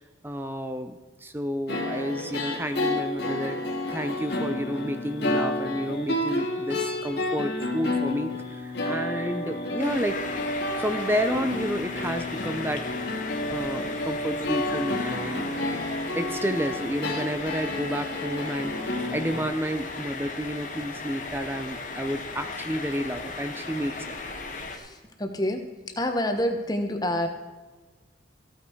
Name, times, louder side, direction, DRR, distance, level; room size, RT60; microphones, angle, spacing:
voice 1, 0.2-3.6 3.9-10.4 10.8-12.8 13.1-13.2 13.5-15.5 16.2-24.1, equal, 10° right, 8 dB, 0.6 m, -31 dB
sound 1, 1.7-19.4, left 1 dB, 60° left, 2.2 m, -30 dB
sound 2, 9.8-24.8, left 3 dB, 45° left, 1.5 m, -36 dB
voice 2, 24.7-25.7 26.0-27.3, left 1 dB, 20° left, 5 dB, 1.2 m, -28 dB
15.0 x 9.0 x 4.6 m, 1.3 s
head